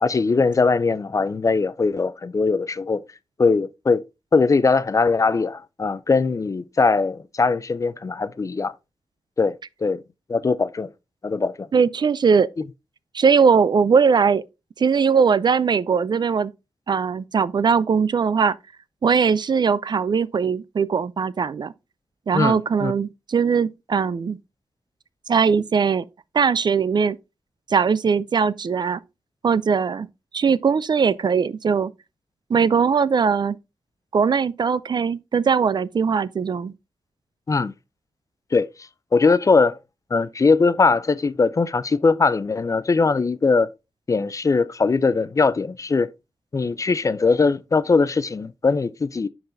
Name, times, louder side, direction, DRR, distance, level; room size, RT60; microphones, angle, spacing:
voice 1, 0.0-3.0 3.4-4.0 4.3-8.7 9.4-9.5 9.8-10.0 10.3-10.9 11.2-11.7 22.3-22.9 37.5-37.7 38.5-38.7 39.1-39.8 40.1-43.7 44.1-46.1 46.5-49.3, left 4 dB, 35° left, 0.4 m, -20 dB
voice 2, 11.7-12.5 13.1-14.4 14.8-16.5 16.9-18.6 19.0-21.7 22.3-24.4 25.3-26.0 26.3-27.2 27.7-29.0 29.4-30.1 30.3-31.9 32.5-33.6 34.1-36.7, right 6 dB, 50° right, 0.4 m, -20 dB
10.0 x 4.0 x 2.6 m
wide cardioid pair, 95°, 10 cm